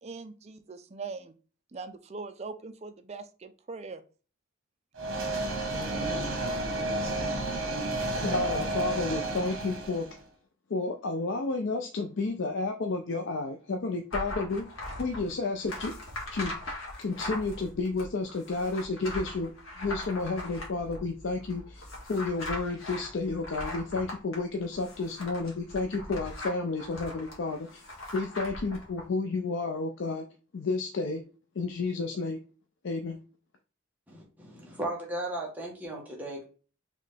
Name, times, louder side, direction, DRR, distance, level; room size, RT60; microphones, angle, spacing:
voice 1, 0.0-1.3 1.7-4.0, right 4 dB, 30° right, 8 dB, 0.4 m, -41 dB
sound 1, 5.0-10.1, right 2 dB, 70° right, 1.1 m, -31 dB
voice 2, 8.2-10.2 10.7-14.7 15.0-15.9 16.3-16.6 17.0-30.2 30.5-31.2 31.6-32.4 32.8-33.2, left 3 dB, 60° left, 5 dB, 0.5 m, -31 dB
sound 2, 14.1-29.0, left 1 dB, 80° left, 1.5 m, -40 dB
voice 3, 34.1-36.4, right 1 dB, 10° right, -2 dB, 1.1 m, -36 dB
4.0 x 3.2 x 3.3 m, 0.37 s
head